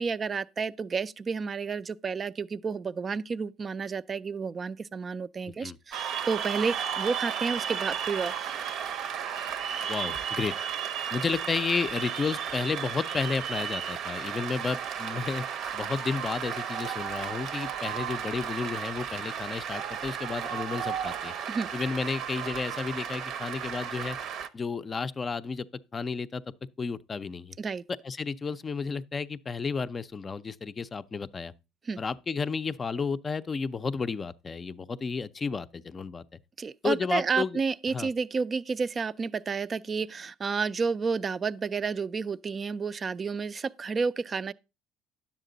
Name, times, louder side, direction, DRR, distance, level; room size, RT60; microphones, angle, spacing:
voice 1, 0.0-8.5 21.5-21.7 27.6-27.8 31.9-32.0 36.6-44.5, right 5 dB, 30° right, 0.4 m, -31 dB
Cheering / Applause, 5.9-24.5, right 8 dB, 60° right, 0.7 m, -34 dB
voice 2, 9.9-10.5 11.1-15.5 15.7-21.3 21.7-24.2 24.5-25.7 25.9-27.6 28.0-31.5 32.0-36.4 36.8-37.6 37.9-38.1, left 5 dB, 25° left, 0.5 m, -32 dB
10.0 x 7.3 x 3.9 m
supercardioid pair, 105°, 0 cm